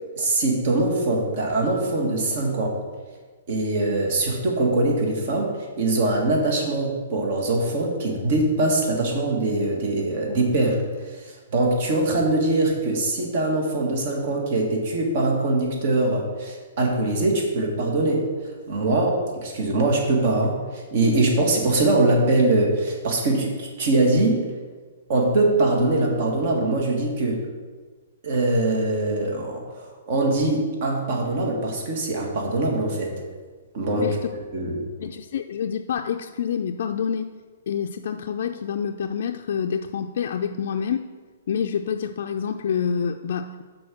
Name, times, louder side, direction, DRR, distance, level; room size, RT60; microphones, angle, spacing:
voice 1, 0.2-2.8 3.5-5.5 5.8-10.8 11.1-24.4 25.1-27.4 28.2-33.2 33.7-34.2 34.5-34.8, right 2 dB, 55° right, 0 dB, 1.7 m, -22 dB
voice 2, 34.0-34.3 35.0-37.3 37.7-41.1 41.5-43.6, left 7 dB, 65° left, 4 dB, 0.4 m, -27 dB
6.2 x 4.4 x 6.2 m, 1.4 s
hypercardioid pair, 130°, 0 cm